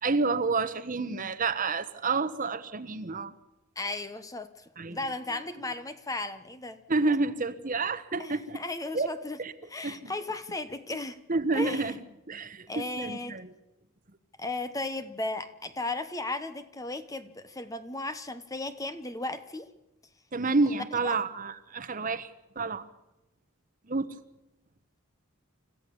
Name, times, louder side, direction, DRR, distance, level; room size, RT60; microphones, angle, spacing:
voice 1, 0.0-3.3 4.8-5.0 6.9-8.6 8.9-9.1 9.4-9.5 9.8-10.1 11.3-12.0 12.3-13.5 20.3-22.3 22.6-22.9 23.9-24.1, right 3 dB, 40° right, 12 dB, 1.1 m, -29 dB
voice 2, 3.8-4.5 4.9-6.8 8.2-9.4 9.7-11.2 11.5-11.9 12.7-13.4 14.4-19.7 20.7-21.2, left 2 dB, 15° left, 11 dB, 1.1 m, -35 dB
26.0 x 14.5 x 7.0 m, 0.93 s
head